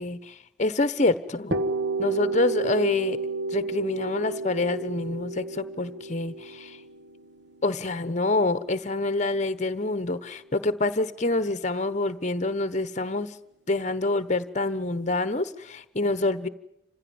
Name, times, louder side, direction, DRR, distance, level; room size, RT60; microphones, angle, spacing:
voice 1, 0.0-1.5 2.0-3.2 3.5-6.8 7.6-13.3 13.7-16.5, left 2 dB, 35° left, 14 dB, 1.1 m, -26 dB
sound 1, 1.5-9.2, right 3 dB, 60° right, 1.7 m, -31 dB
28.0 x 16.0 x 9.5 m, 0.83 s
head